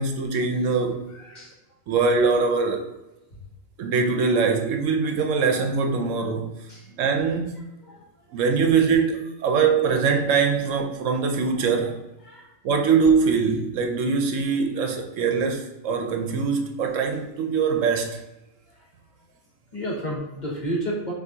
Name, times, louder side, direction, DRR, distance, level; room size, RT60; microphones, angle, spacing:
voice 1, 0.0-1.0 1.9-2.8 3.8-6.5 7.0-7.6 8.3-12.0 12.6-18.2, right 5 dB, 75° right, 0.9 m, -22 dB
voice 2, 1.1-1.5 6.7-6.9 7.9-8.4 12.2-12.5 18.7-18.8 19.7-21.1, right 1 dB, 35° left, 1.2 m, -32 dB
6.1 x 2.7 x 2.7 m
omnidirectional pair, 1.4 m